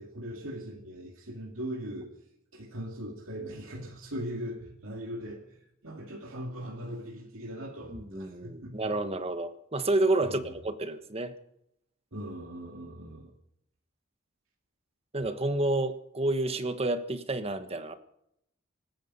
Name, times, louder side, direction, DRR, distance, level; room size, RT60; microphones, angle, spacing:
voice 1, 0.0-2.1 2.5-8.9 10.2-10.6 12.1-13.3, equal, 80° right, 2.3 m, -40 dB
voice 2, 7.9-11.4 15.1-17.9, right 2 dB, 30° right, 1.3 m, -30 dB
25.0 x 10.5 x 5.5 m
head